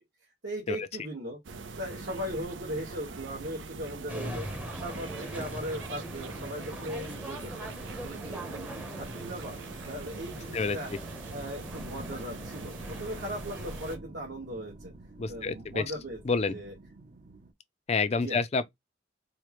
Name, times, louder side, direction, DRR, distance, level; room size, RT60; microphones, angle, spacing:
voice 1, 0.4-1.4 1.8-4.5 4.8-7.7 8.0-9.6 9.8-14.9 15.3-16.7 18.1-18.4, equal, 70° right, 1.4 m, -38 dB
sound 1, 1.4-14.0, right 4 dB, 85° right, 0.6 m, -43 dB
sound 2, 4.1-14.0, right 1 dB, 10° right, 0.7 m, -42 dB
sound 3, 11.7-17.5, right 1 dB, 45° right, 0.6 m, -48 dB
voice 2, 15.2-15.8 16.3-16.5 17.9-18.7, left 4 dB, 35° left, 0.4 m, -28 dB
4.8 x 2.2 x 3.0 m
head